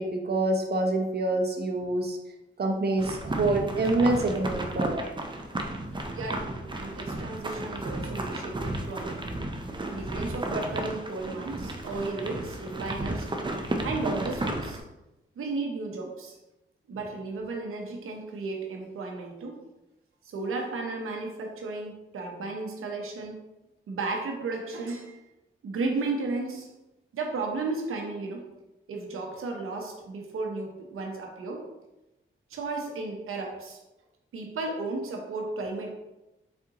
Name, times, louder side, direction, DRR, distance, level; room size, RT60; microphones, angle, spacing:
voice 1, 0.0-2.2 2.6-5.1, right 2 dB, 50° right, 2 dB, 0.9 m, -26 dB
sound 1, 3.0-14.8, right 1 dB, 20° right, 0.6 m, -33 dB
voice 2, 6.1-9.3 9.7-13.3 13.8-14.8 15.4-16.4 16.9-19.6 20.2-23.4 23.9-25.2 25.6-26.7 27.1-28.4 28.9-31.7 32.5-33.8 34.3-35.9, right 3 dB, 85° right, 2 dB, 0.9 m, -34 dB
4.3 x 3.5 x 2.9 m, 0.97 s
cardioid pair, 50°, 21 cm